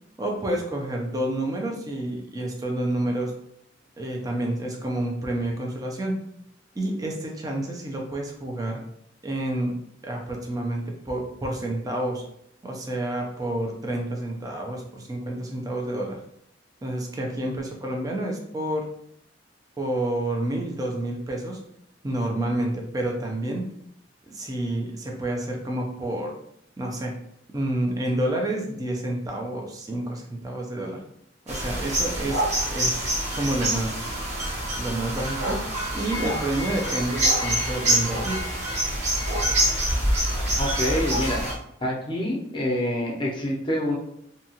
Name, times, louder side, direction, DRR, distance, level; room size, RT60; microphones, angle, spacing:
voice 1, 0.2-3.3 4.0-6.2 6.8-8.8 9.2-9.8 10.0-12.2 12.6-16.2 16.8-18.9 19.8-21.6 22.0-23.7 24.3-26.4 26.8-27.1 27.5-31.0 31.5-34.0 34.7-35.6 35.9-38.4, right 1 dB, 20° right, 0 dB, 0.4 m, -29 dB
sound 1, 31.5-41.5, right 1 dB, 40° right, 0.9 m, -26 dB
voice 2, 40.6-41.4 41.8-44.0, left 1 dB, 25° left, -2 dB, 0.6 m, -26 dB
2.7 x 2.3 x 2.8 m, 0.72 s
head